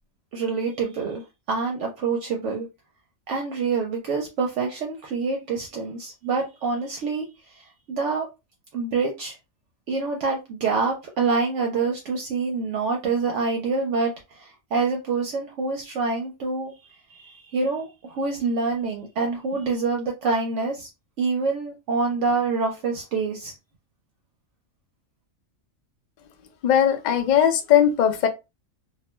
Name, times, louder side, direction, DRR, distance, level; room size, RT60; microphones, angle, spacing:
voice 1, 0.3-1.2 1.5-2.7 3.3-8.3 8.7-9.4 9.9-20.9 21.2-23.5, right 4 dB, 70° right, 0.9 m, -26 dB
voice 2, 26.6-28.3, left 9 dB, 80° left, 0.4 m, -19 dB
2.5 x 2.1 x 2.9 m
omnidirectional pair, 1.4 m